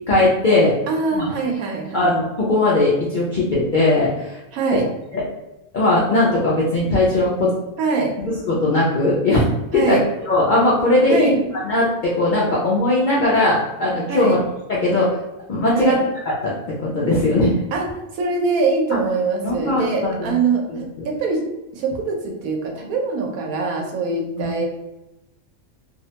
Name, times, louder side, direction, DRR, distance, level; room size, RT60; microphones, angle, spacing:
voice 1, 0.1-0.8 1.1-1.3 1.9-4.4 4.7-4.8 5.1-5.2 5.7-7.5 8.2-9.5 9.7-10.0 10.3-11.4 11.6-14.4 14.7-15.2 15.5-16.0 16.4-17.6 19.4-20.4 20.7-20.8 24.4-24.5, left 2 dB, 75° left, -5 dB, 0.4 m, -19 dB
voice 2, 0.9-2.1 4.5-4.9 7.8-8.2 9.7-10.0 11.1-11.3 14.1-14.4 15.7-16.0 17.7-17.9 18.1-21.4 21.7-24.7, right 4 dB, 85° right, 0 dB, 1.1 m, -23 dB
2.6 x 2.1 x 2.8 m, 0.95 s
omnidirectional pair, 1.5 m